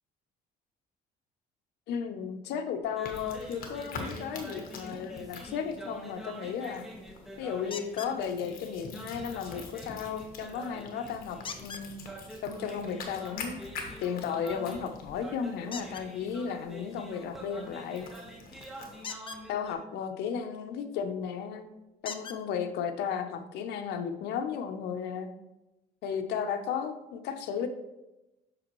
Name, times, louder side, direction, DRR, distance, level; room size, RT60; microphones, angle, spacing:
voice 1, 1.9-6.8 7.4-13.6 14.0-18.1 19.5-21.6 22.0-25.3 26.0-27.7, left 7 dB, 80° left, 7 dB, 0.7 m, -34 dB
sound 1, 2.8-19.7, right 1 dB, ahead, 1.2 m, -46 dB
sound 2, 3.0-19.1, left 4 dB, 60° left, 1.3 m, -46 dB
sound 3, 7.7-8.2 11.4-11.9 15.7-16.1 19.0-19.4 21.1-21.2 22.0-22.4 23.4-23.5 24.0-24.1, left 5 dB, 30° left, 0.6 m, -40 dB
7.7 x 6.0 x 3.1 m, 1.0 s
cardioid pair, 110°, 17 cm